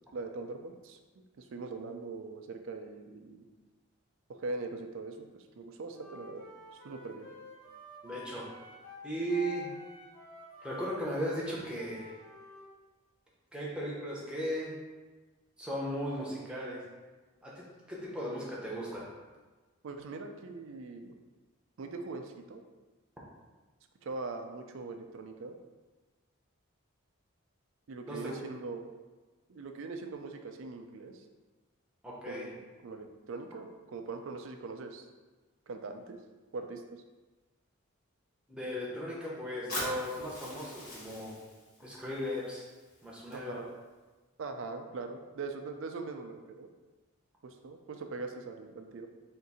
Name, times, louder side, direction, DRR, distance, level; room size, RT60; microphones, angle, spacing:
voice 1, 0.1-3.4 4.3-6.4 6.8-7.3 19.8-21.2 21.8-22.6 24.0-25.6 27.9-28.9 29.5-31.2 32.3-35.1 35.7-36.2 36.5-37.0 43.3-43.7 44.4-46.7 47.4-49.1, right 3 dB, 65° right, 5 dB, 0.4 m, -41 dB
Wind instrument woodwind instrument, 5.9-12.7, left 3 dB, 70° left, 1.0 m, -49 dB
voice 2, 8.0-8.4 9.0-9.7 10.6-12.1 13.5-14.8 15.6-16.8 17.4-19.1 28.1-28.4 32.0-32.4 38.5-41.3 41.8-42.6 43.0-43.6, equal, 5° right, -6 dB, 0.7 m, -36 dB
Fire, 39.7-43.7, left 1 dB, 90° left, 1.2 m, -43 dB
3.7 x 2.5 x 4.1 m, 1.3 s
head